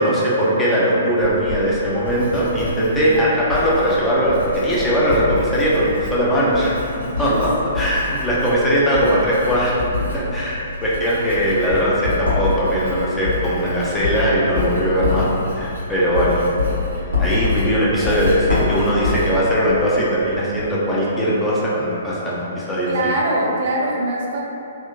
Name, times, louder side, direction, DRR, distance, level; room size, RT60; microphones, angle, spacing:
voice 1, 0.0-6.8 7.2-7.5 7.7-9.8 10.1-16.5 16.9-23.1, equal, 10° left, -8 dB, 0.5 m, -19 dB
Writing, 1.2-20.7, left 3 dB, 85° left, 1.0 m, -27 dB
voice 2, 7.0-7.4 22.8-24.4, right 1 dB, 50° right, -3 dB, 0.4 m, -22 dB
2.7 x 2.1 x 2.2 m, 2.8 s
figure-of-eight pair, 125°, 0 cm